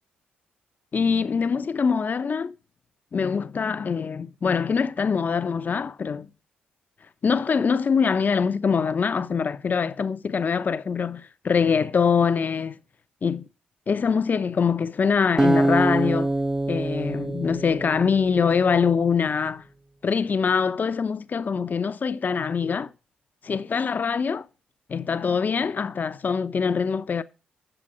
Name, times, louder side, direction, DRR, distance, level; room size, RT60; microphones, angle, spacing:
voice 1, 0.9-2.5 3.1-6.3 7.2-12.7 13.2-13.5 13.9-16.3 16.7-19.6 20.0-22.9 23.4-24.5 24.9-27.2, left 6 dB, 45° left, 0.7 m, -24 dB
Acoustic guitar, 15.4-18.6, right 1 dB, 15° right, 0.6 m, -24 dB
9.0 x 6.8 x 4.9 m
hypercardioid pair, 45°, 4 cm